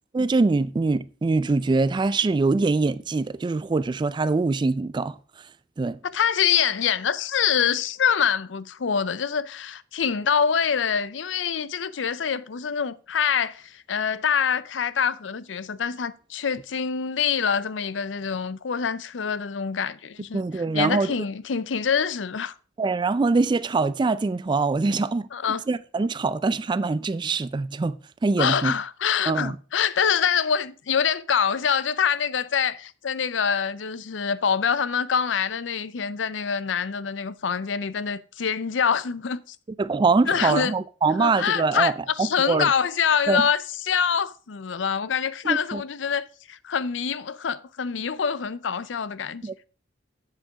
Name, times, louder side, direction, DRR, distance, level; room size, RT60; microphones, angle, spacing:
voice 1, 0.1-5.2 5.8-6.0 20.3-21.1 22.8-25.3 25.7-28.0 28.2-28.7 29.3-29.5 39.8-41.9 42.2-42.7 43.3-43.4 45.4-45.8 49.4-49.7, right 3 dB, 25° right, 0.3 m, -23 dB
voice 2, 6.0-22.5 25.3-25.6 28.4-39.6 40.3-40.7 41.2-49.4, left 7 dB, 85° left, 0.6 m, -25 dB
7.7 x 7.4 x 4.8 m
head